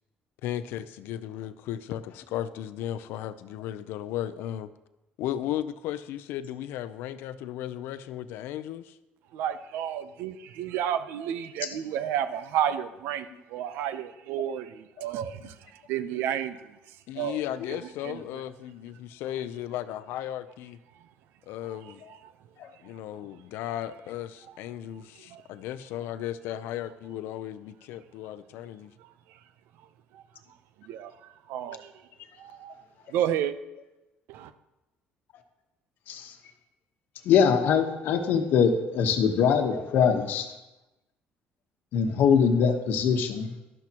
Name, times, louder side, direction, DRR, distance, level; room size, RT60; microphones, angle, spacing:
voice 1, 0.4-4.7 5.2-9.0 17.1-20.8 21.5-22.0 22.8-28.9, left 12 dB, 80° left, 13 dB, 0.5 m, -35 dB
voice 2, 9.3-13.3 13.5-15.5 15.9-16.6 17.2-17.4 18.0-18.2 25.3-25.4 30.9-31.1 31.5-31.9 32.4-32.7 33.1-33.5 34.3-34.5, right 10 dB, 80° right, 12 dB, 0.6 m, -31 dB
voice 3, 37.2-40.5 41.9-43.5, left 7 dB, 60° left, 6 dB, 1.1 m, -23 dB
12.0 x 12.0 x 2.9 m, 1.0 s
cardioid pair, 160°, 4 cm